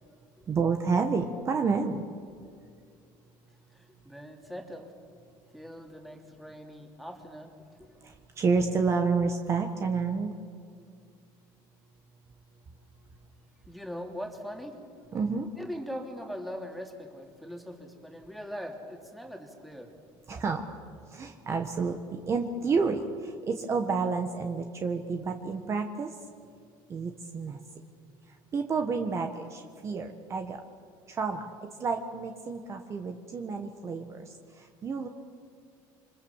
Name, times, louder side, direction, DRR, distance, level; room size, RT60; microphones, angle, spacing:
voice 1, 0.5-2.0 8.0-10.3 15.1-15.5 20.3-20.6 21.1-26.2 26.9-27.6 28.3-30.6 31.1-31.4 31.8-35.1, right 4 dB, 30° right, 5 dB, 1.4 m, -30 dB
voice 2, 3.7-5.0 5.5-7.9 13.7-14.8 15.6-19.9, equal, ahead, 2 dB, 3.0 m, -41 dB
27.0 x 25.5 x 7.3 m, 2.3 s
cardioid pair, 135°, 9 cm